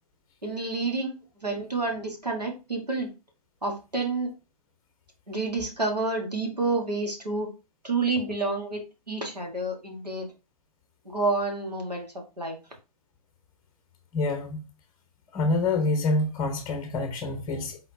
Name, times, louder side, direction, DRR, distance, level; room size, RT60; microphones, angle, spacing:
voice 1, 0.4-1.1 1.4-3.1 3.6-4.3 5.3-7.5 7.8-8.8 9.1-10.3 11.0-12.1 12.4-12.6, right 3 dB, 85° right, 1.6 m, -29 dB
voice 2, 14.1-14.6 15.3-17.8, left 2 dB, 20° left, 0.9 m, -26 dB
4.2 x 4.1 x 2.7 m
figure-of-eight pair, 120°, 20 cm